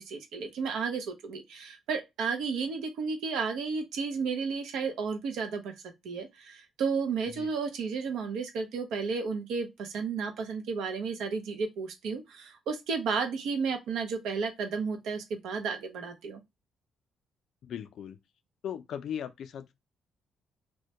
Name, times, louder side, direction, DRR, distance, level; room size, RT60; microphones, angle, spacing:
voice 1, 0.0-5.7 6.0-16.4, right 5 dB, 85° right, 0.5 m, -32 dB
voice 2, 17.6-18.2 18.6-19.7, left 9 dB, 70° left, 0.4 m, -38 dB
2.1 x 2.1 x 2.7 m
cardioid pair, 90°, 0 cm